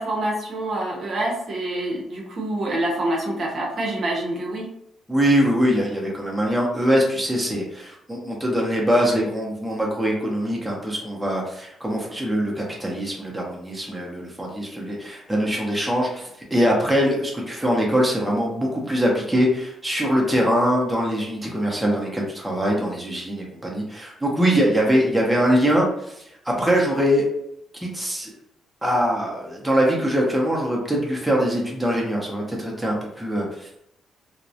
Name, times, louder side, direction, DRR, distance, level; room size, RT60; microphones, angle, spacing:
voice 1, 0.0-4.7, right 1 dB, 50° right, 0 dB, 0.6 m, -26 dB
voice 2, 5.1-26.1 26.4-27.3 27.8-28.3 28.8-33.7, equal, 5° right, -2 dB, 0.5 m, -22 dB
2.3 x 2.0 x 2.7 m, 0.77 s
cardioid pair, 105°, 0 cm